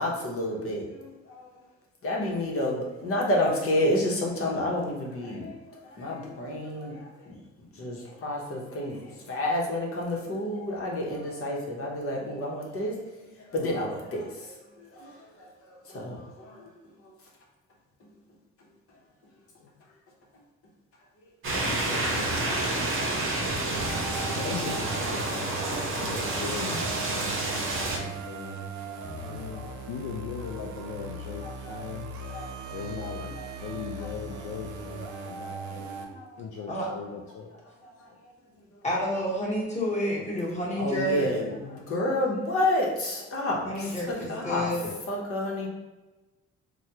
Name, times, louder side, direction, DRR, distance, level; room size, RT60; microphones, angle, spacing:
voice 1, 0.0-1.4 2.0-5.6 6.0-7.0 7.3-7.4 7.8-9.0 9.3-12.9 13.5-14.5 15.0-15.1 15.9-16.7 24.1-24.2 29.5-29.7 31.4-31.8 32.3-32.5 36.2-36.3 40.8-44.7 45.1-45.7, left 1 dB, 45° left, -3 dB, 0.9 m, -29 dB
voice 2, 19.6-20.0 21.5-23.5 24.4-27.4 27.9-28.7 29.2-32.1 32.7-35.9 36.4-37.5, left 6 dB, 80° left, 1 dB, 0.5 m, -39 dB
sound 1, 21.4-28.0, right 2 dB, 45° right, 0.8 m, -29 dB
sound 2, 23.7-36.1, right 3 dB, 70° right, 0.6 m, -39 dB
voice 3, 38.8-41.3 43.6-44.9, equal, 25° left, -5 dB, 1.2 m, -29 dB
3.3 x 2.3 x 2.8 m, 1.1 s
cardioid pair, 90°, 30 cm